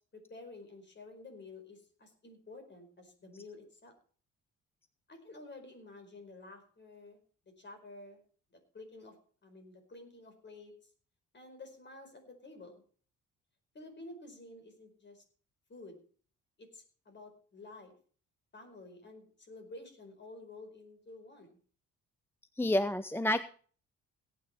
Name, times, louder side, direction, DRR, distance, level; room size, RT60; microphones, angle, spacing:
voice 1, 0.1-3.9 5.1-7.2 7.6-8.2 8.5-9.1 9.4-10.7 11.3-12.8 13.7-15.2 15.7-16.0 16.6-17.9 18.5-21.6, left 2 dB, 35° left, 6 dB, 4.8 m, -51 dB
voice 2, 22.6-23.4, left 1 dB, 10° left, 13 dB, 0.6 m, -29 dB
17.5 x 8.9 x 4.4 m, 0.43 s
cardioid pair, 90°, 30 cm